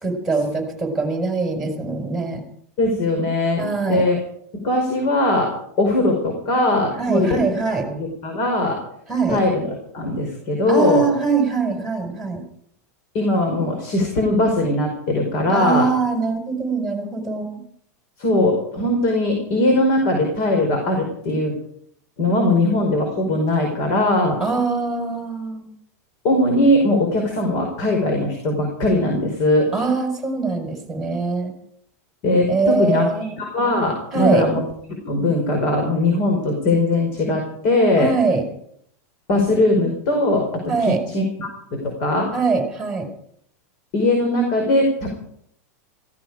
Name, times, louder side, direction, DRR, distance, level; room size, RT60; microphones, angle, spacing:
voice 1, 0.0-2.4 3.6-4.0 7.0-7.9 9.1-9.4 10.7-12.4 15.5-17.6 24.4-25.7 29.7-31.5 32.5-33.3 34.1-34.4 38.0-38.5 40.7-41.0 42.3-43.1, right 4 dB, 5° right, 3 dB, 5.0 m, -22 dB
voice 2, 2.8-4.2 4.6-7.4 7.9-8.8 9.3-11.1 13.1-15.9 18.2-21.5 22.2-24.4 26.2-29.7 32.2-33.0 33.4-34.6 35.0-38.1 39.3-42.3 43.9-45.2, left 1 dB, 50° left, 3 dB, 5.1 m, -20 dB
16.5 x 15.5 x 5.0 m, 0.69 s
supercardioid pair, 140°, 9 cm